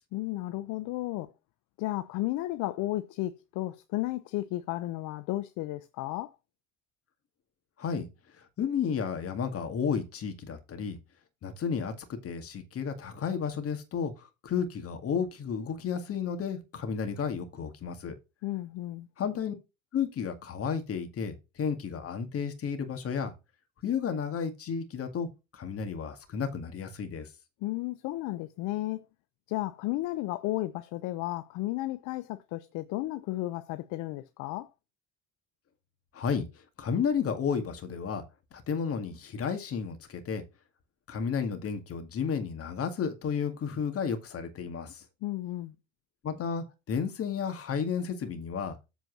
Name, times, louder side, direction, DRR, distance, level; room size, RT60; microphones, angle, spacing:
voice 1, 0.1-1.3 1.8-6.4 18.4-19.1 27.6-29.1 29.5-34.7 45.2-45.7, left 17 dB, 65° left, 0.7 m, -33 dB
voice 2, 8.4-11.0 11.4-18.2 19.2-19.5 19.9-23.3 23.8-25.3 25.5-27.3 36.1-36.5 36.8-38.2 38.5-40.4 41.1-45.0 46.2-48.8, left 6 dB, 45° left, 2.1 m, -32 dB
8.1 x 4.5 x 5.9 m
supercardioid pair, 95°, 32 cm